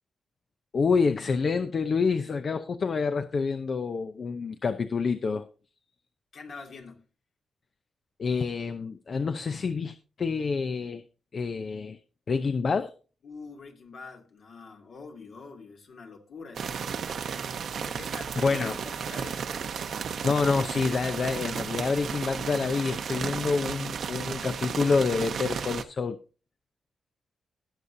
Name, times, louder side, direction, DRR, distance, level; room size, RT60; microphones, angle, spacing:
voice 1, 0.7-5.5 8.2-11.0 11.3-12.0 12.3-12.9 18.4-18.8 20.2-26.2, left 4 dB, 50° left, 0.7 m, -27 dB
voice 2, 6.3-7.0 13.2-17.0 17.8-19.4, left 4 dB, 70° left, 2.6 m, -45 dB
sound 1, 16.5-25.8, right 6 dB, 70° right, 1.0 m, -34 dB
20.0 x 6.7 x 2.7 m
cardioid pair, 75°, 0 cm